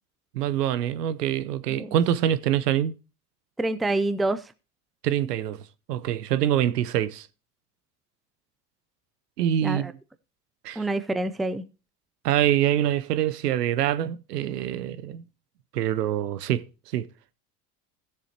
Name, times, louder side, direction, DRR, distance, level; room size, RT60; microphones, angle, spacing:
voice 1, 0.3-2.9 5.0-5.6 5.9-7.3 9.4-9.9 10.6-10.8 12.2-15.2 15.7-16.7 16.9-17.1, right 11 dB, 85° right, 0.8 m, -25 dB
voice 2, 3.6-4.5 9.6-9.9 10.8-11.7, right 2 dB, ahead, 0.4 m, -27 dB
16.0 x 7.0 x 2.9 m
hypercardioid pair, 85°, 46 cm